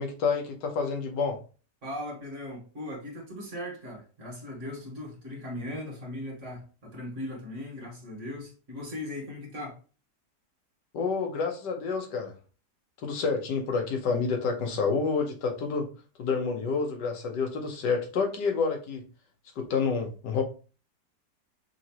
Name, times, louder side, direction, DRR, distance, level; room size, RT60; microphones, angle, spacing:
voice 1, 0.0-1.4 10.9-12.3 13.0-15.9 16.2-19.0 19.6-20.4, left 5 dB, 85° left, 1.5 m, -28 dB
voice 2, 1.8-9.8, left 1 dB, 45° right, 1.8 m, -38 dB
5.7 x 2.9 x 2.9 m
omnidirectional pair, 1.8 m